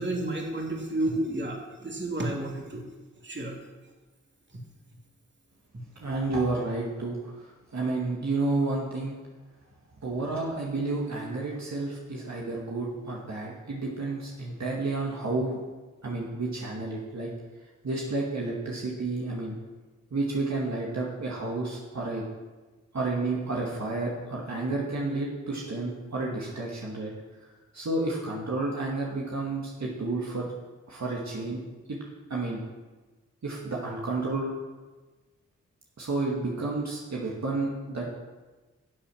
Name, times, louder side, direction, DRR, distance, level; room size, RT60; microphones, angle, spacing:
voice 1, 0.0-2.8 3.2-3.6, right 1 dB, 35° right, 0 dB, 2.7 m, -31 dB
voice 2, 6.0-9.2 10.0-15.6 16.0-17.3 17.8-19.6 20.1-22.2 22.9-27.1 27.7-30.5 30.9-31.6 31.9-32.0 32.3-32.6 33.4-34.5 36.0-38.1, right 2 dB, 60° right, -3 dB, 2.1 m, -31 dB
10.5 x 7.4 x 6.4 m, 1.2 s
cardioid pair, 45°, 31 cm